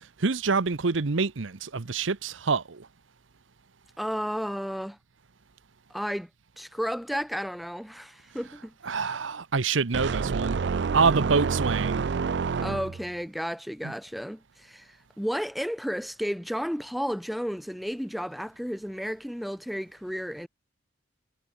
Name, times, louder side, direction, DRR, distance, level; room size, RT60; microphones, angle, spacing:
voice 1, 0.2-2.9 8.8-10.6 10.9-12.1 13.8-13.9, right 4 dB, 75° right, 0.9 m, -26 dB
voice 2, 4.0-5.0 5.9-6.3 6.6-8.7 12.6-14.9 15.2-20.5, equal, ahead, 2.5 m, -32 dB
sound 1, 9.9-13.1, right 5 dB, 60° right, 0.4 m, -28 dB
head